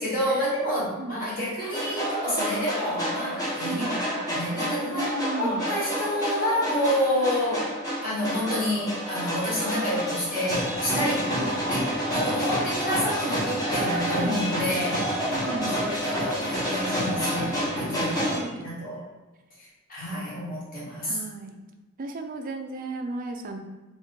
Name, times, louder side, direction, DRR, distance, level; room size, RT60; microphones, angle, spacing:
voice 1, 0.0-4.0 4.3-7.7 8.0-11.3 11.7-15.1 15.6-19.0 19.6-21.2, equal, 45° left, -7 dB, 1.4 m, -29 dB
voice 2, 0.7-1.2 3.6-4.0 4.9-5.6 11.3-11.6 14.0-14.5 15.3-15.8 18.1-18.7 21.0-21.6 22.0-23.6, right 2 dB, 40° right, 4 dB, 0.4 m, -34 dB
sound 1, 1.6-18.4, equal, 20° left, 1.1 m, -29 dB
2.9 x 2.7 x 3.5 m, 1.2 s
head